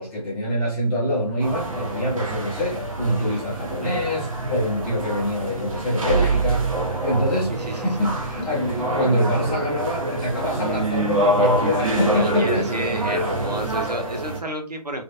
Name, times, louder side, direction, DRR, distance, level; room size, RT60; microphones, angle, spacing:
voice 1, 0.0-12.6 13.2-13.8, equal, 5° left, 0.7 m, -25 dB
sound 1, 1.4-14.4, right 2 dB, 55° right, 0.8 m, -25 dB
voice 2, 7.5-8.1 11.9-15.0, right 1 dB, 85° right, 0.9 m, -31 dB
3.0 x 2.5 x 2.5 m
figure-of-eight pair, 145°, 20 cm